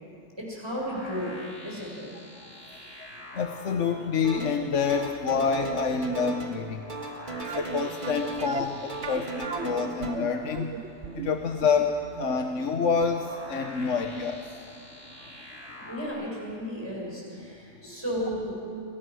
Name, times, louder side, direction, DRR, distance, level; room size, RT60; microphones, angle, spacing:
voice 1, 0.4-2.1 15.9-18.6, equal, 20° right, -4 dB, 7.0 m, -34 dB
sound 1, 0.7-16.1, left 1 dB, 55° left, 5.8 m, -47 dB
voice 2, 2.3-3.1 3.3-6.8 7.4-10.8 11.1-14.9, left 5 dB, 75° left, 5 dB, 1.4 m, -28 dB
sound 2, 4.2-4.6 4.9-6.6 6.9-8.6 8.9-10.1, right 3 dB, 40° right, 2.4 m, -37 dB
sound 3, 7.4-14.3 14.5-14.6 15.2-15.3 15.6-15.7, right 6 dB, 65° right, 1.2 m, -39 dB
30.0 x 22.5 x 6.4 m, 2.4 s
omnidirectional pair, 1.3 m